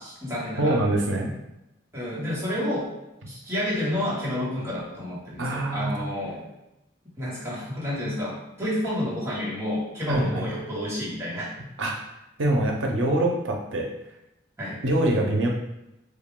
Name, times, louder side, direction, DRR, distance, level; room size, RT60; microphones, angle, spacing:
voice 1, 0.0-0.8 1.9-2.9 3.3-6.4 7.2-11.5 14.6-14.8, left 1 dB, 15° right, -8 dB, 1.2 m, -30 dB
voice 2, 0.6-1.3 5.4-5.9 10.1-10.5 11.8-12.0 12.4-13.9 14.8-15.5, right 1 dB, 80° right, 0 dB, 0.7 m, -24 dB
3.4 x 2.4 x 3.7 m, 0.91 s
head